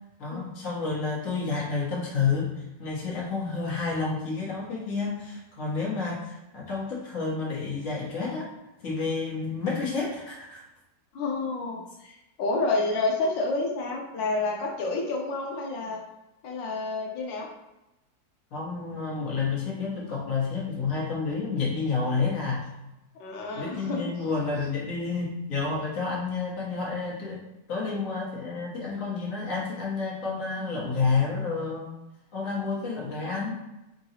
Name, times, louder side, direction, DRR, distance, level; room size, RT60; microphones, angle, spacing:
voice 1, 0.2-2.5 2.8-8.5 8.8-10.6 18.5-22.7 23.6-27.4 27.7-31.9 32.3-33.6, left 4 dB, 50° left, -4 dB, 1.4 m, -30 dB
voice 2, 11.1-16.0 16.4-17.5 23.2-24.0, left 3 dB, 85° left, -1 dB, 1.3 m, -29 dB
3.8 x 2.3 x 4.1 m, 0.93 s
omnidirectional pair, 2.0 m